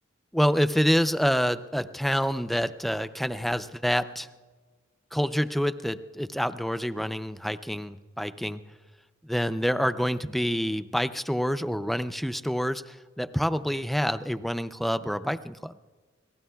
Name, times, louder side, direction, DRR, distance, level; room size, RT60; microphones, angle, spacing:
voice 1, 0.3-4.3 5.1-8.6 9.2-15.7, equal, ahead, 12 dB, 0.4 m, -27 dB
28.5 x 19.5 x 2.3 m, 1.5 s
head